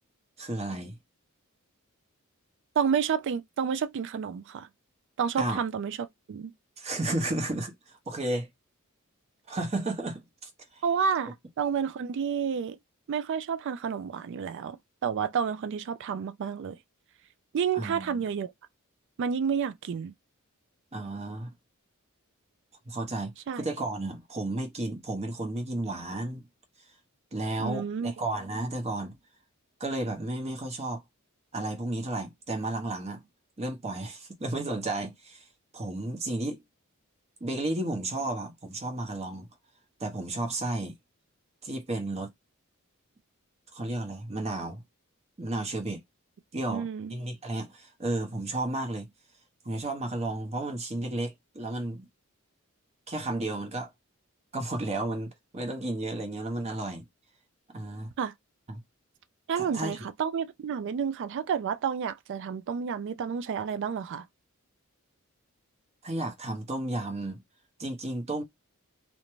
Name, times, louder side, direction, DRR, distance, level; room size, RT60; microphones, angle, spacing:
voice 1, 0.4-1.0 5.4-5.6 6.8-7.7 8.1-8.5 9.5-10.8 17.7-18.2 20.9-21.5 22.9-26.4 27.3-29.2 29.8-31.0 31.5-33.2 33.6-35.4 35.7-36.6 37.4-39.5 40.0-41.0 41.6-42.3 43.7-44.8 45.4-46.0 46.5-49.1 49.6-52.1 53.1-53.9 54.5-57.0 57.7-58.1 58.7-58.8 59.6-60.0 66.0-67.4 67.8-68.4, right 2 dB, 30° right, 0.8 m, -33 dB
voice 2, 2.8-4.7 5.2-6.5 10.8-12.8 13.1-14.8 15.0-16.8 17.5-18.5 19.2-20.1 23.5-23.6 27.6-28.1 46.7-47.1 58.2-58.3 59.5-64.2, right 7 dB, 55° right, 0.3 m, -30 dB
2.5 x 2.1 x 2.9 m
head